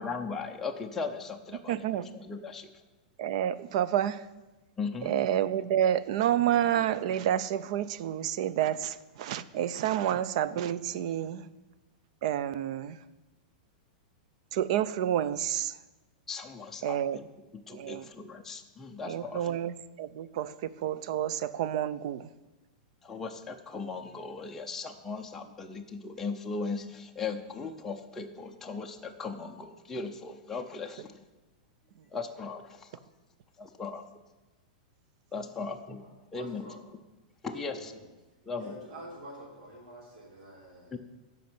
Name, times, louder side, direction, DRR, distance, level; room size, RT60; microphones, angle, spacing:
voice 1, 0.0-2.7 4.8-5.1 16.3-17.2 17.5-19.5 23.0-31.2 32.1-32.9 33.6-34.0 35.3-36.0 36.3-36.6 37.4-37.9 38.4-38.7 40.9-41.0, left 4 dB, 5° left, 1 dB, 0.5 m, -38 dB
voice 2, 1.7-2.1 3.2-4.3 5.0-11.4 12.2-13.0 14.5-15.8 16.8-17.2 17.7-18.1 19.1-22.3, right 10 dB, 50° right, 16 dB, 0.4 m, -29 dB
voice 3, 36.0-36.8 37.5-38.1 38.6-41.0, right 1 dB, 65° right, -5 dB, 3.6 m, -47 dB
13.0 x 5.3 x 5.9 m, 1.1 s
supercardioid pair, 165°, 5 cm